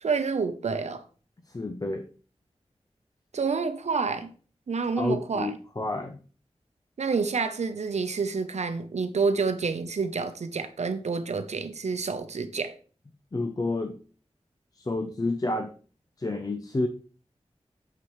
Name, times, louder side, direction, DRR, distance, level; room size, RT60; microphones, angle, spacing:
voice 1, 0.0-1.0 3.3-4.3 4.7-5.5 7.0-12.7, right 4 dB, 80° right, 0.7 m, -28 dB
voice 2, 1.5-2.0 5.0-6.2 13.3-14.0 14.8-15.7 16.2-16.9, left 2 dB, 35° left, 0.6 m, -29 dB
6.9 x 5.8 x 3.1 m
wide cardioid pair, 70°, 11 cm